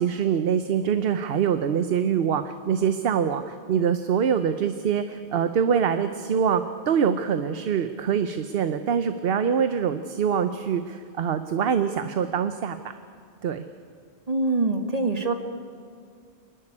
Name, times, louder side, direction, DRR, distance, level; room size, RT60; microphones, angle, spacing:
voice 1, 0.0-12.8 13.4-13.6, right 7 dB, 65° right, 10 dB, 0.9 m, -24 dB
voice 2, 14.3-15.3, right 3 dB, 35° right, 5 dB, 1.5 m, -24 dB
26.0 x 11.5 x 9.9 m, 2.2 s
omnidirectional pair, 1.1 m